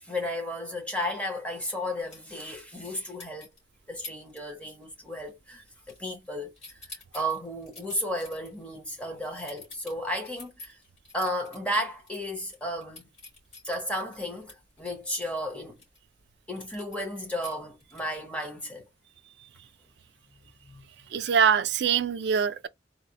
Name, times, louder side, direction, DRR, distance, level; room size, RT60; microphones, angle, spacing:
voice 1, 0.0-3.5 3.9-6.5 6.9-10.8 11.1-13.1 13.6-15.8 16.5-18.8 20.6-20.8, equal, 5° left, 0.8 m, -33 dB
sound 1, 2.1-2.9 3.2-3.6 4.0-4.4 4.7-5.0 5.3-6.3 6.5-11.6 12.0-12.1 12.4-16.0 16.6-18.2, left 2 dB, 35° left, 2.4 m, -47 dB
voice 2, 21.1-22.7, right 7 dB, 65° right, 0.4 m, -23 dB
4.0 x 2.0 x 2.8 m
head